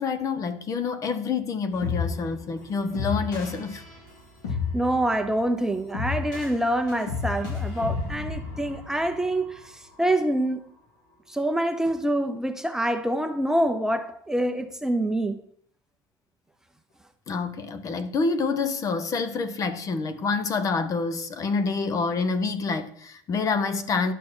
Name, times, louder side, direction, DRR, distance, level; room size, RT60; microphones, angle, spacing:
voice 1, 0.0-3.8 17.3-24.1, left 4 dB, 35° left, 1.0 m, -27 dB
sound 1, 1.7-9.9, left 5 dB, 90° left, 3.8 m, -33 dB
voice 2, 4.7-10.7 11.3-15.4, right 1 dB, 5° right, 0.8 m, -26 dB
11.0 x 6.5 x 6.2 m
supercardioid pair, 120°, 9 cm